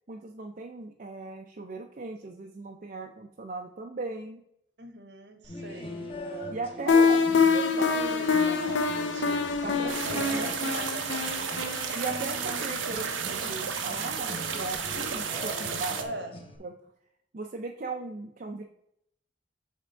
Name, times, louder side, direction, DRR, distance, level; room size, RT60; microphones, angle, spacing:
voice 1, 0.1-4.4 6.0-7.2 9.6-10.5 11.9-16.0 16.6-16.7 17.3-18.6, right 3 dB, 45° right, 2 dB, 0.5 m, -38 dB
voice 2, 4.8-6.1 6.7-7.1 7.5-11.7 16.0-16.3, right 2 dB, 65° right, 7 dB, 1.0 m, -41 dB
sound 1, 5.4-16.6, left 1 dB, 30° left, 1.0 m, -42 dB
sound 2, 6.9-13.6, left 5 dB, 75° left, 0.7 m, -26 dB
sound 3, 9.9-16.0, right 6 dB, 85° right, 0.7 m, -33 dB
7.6 x 3.6 x 4.5 m, 0.74 s
head